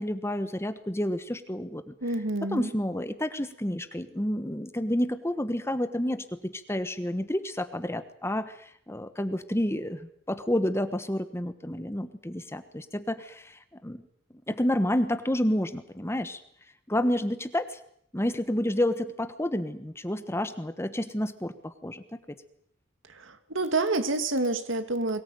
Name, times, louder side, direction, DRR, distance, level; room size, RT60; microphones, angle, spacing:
voice 1, 0.0-1.9 2.5-14.0 14.5-16.4 16.9-17.8 18.1-22.0, left 1 dB, 15° left, 10 dB, 1.3 m, -30 dB
voice 2, 2.0-2.7 23.3-25.2, right 2 dB, 70° right, 9 dB, 2.3 m, -28 dB
23.0 x 18.5 x 9.1 m, 0.68 s
head